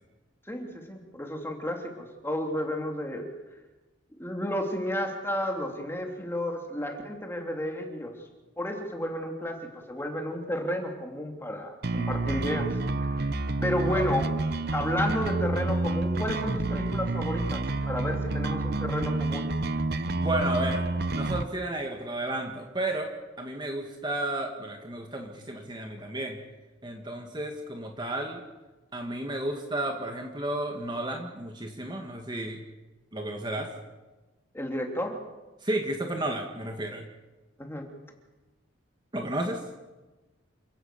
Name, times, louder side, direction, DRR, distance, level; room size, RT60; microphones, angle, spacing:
voice 1, 0.5-3.3 4.2-8.1 8.6-12.7 13.0-13.3 13.6-14.3 14.7-19.5 34.5-35.2 37.6-37.8, equal, 10° left, 2 dB, 3.0 m, -32 dB
sound 1, 11.8-21.4, right 2 dB, 55° right, 0.9 m, -29 dB
voice 2, 20.2-23.1 23.4-26.4 26.8-28.4 28.9-32.6 33.1-33.7 35.6-37.0 39.1-39.6, right 1 dB, 20° right, 3 dB, 1.9 m, -32 dB
28.0 x 17.0 x 6.9 m, 1.1 s
head